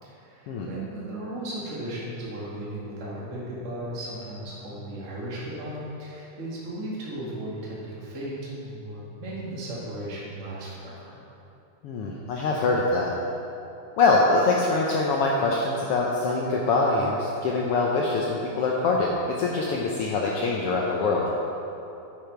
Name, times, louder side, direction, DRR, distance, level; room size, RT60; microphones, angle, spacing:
voice 1, 0.0-11.2, right 1 dB, 30° right, -7 dB, 1.8 m, -36 dB
voice 2, 11.8-13.1 14.0-21.3, left 3 dB, 80° left, -2 dB, 1.3 m, -24 dB
9.5 x 7.1 x 4.5 m, 2.8 s
omnidirectional pair, 3.5 m